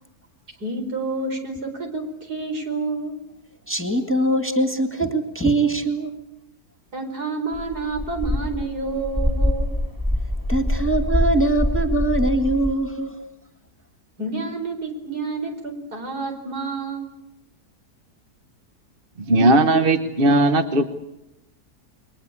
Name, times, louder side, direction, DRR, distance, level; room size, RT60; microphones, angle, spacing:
voice 1, 0.6-3.1 6.9-9.7 14.2-17.1, right 3 dB, 70° right, 4 dB, 5.1 m, -29 dB
voice 2, 3.7-6.2 10.5-13.2, right 2 dB, 5° left, 5 dB, 2.1 m, -22 dB
sound 1, 7.5-12.7, left 1 dB, 10° right, 2.9 m, -24 dB
voice 3, 19.3-21.0, right 1 dB, 40° right, 9 dB, 1.2 m, -17 dB
29.0 x 22.5 x 8.5 m, 0.87 s
omnidirectional pair, 1.7 m